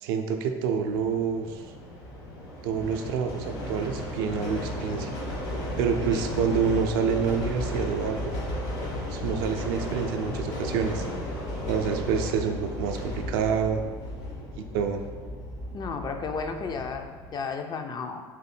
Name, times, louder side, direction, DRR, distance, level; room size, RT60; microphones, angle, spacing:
voice 1, 0.0-1.6 2.6-5.1 5.8-8.4 9.1-11.0 11.7-13.8 14.6-15.0, right 6 dB, 65° right, 5 dB, 0.4 m, -27 dB
sound 1, 0.8-17.3, left 1 dB, 55° left, 1.2 m, -34 dB
voice 2, 15.7-18.2, left 5 dB, 30° left, 5 dB, 0.4 m, -33 dB
3.6 x 2.6 x 4.2 m, 1.5 s
hypercardioid pair, 65°, 13 cm